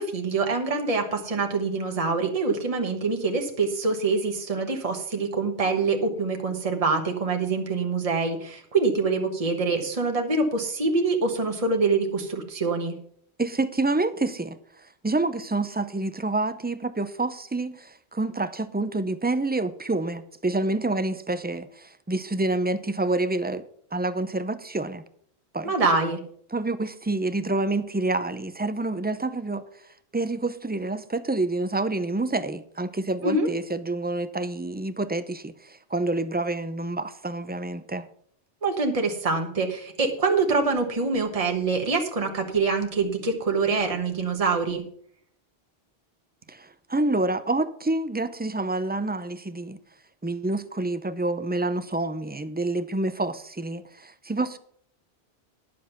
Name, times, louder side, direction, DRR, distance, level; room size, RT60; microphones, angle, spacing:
voice 1, 0.0-12.9 25.6-26.2 33.2-33.5 38.6-44.8, right 4 dB, 35° right, 1.3 m, -25 dB
voice 2, 13.4-14.6 15.0-23.6 23.9-25.0 25.5-25.8 26.5-29.6 30.1-38.1 46.5-49.8 50.2-54.6, right 2 dB, 15° right, 0.4 m, -28 dB
10.5 x 7.3 x 5.8 m
omnidirectional pair, 1.1 m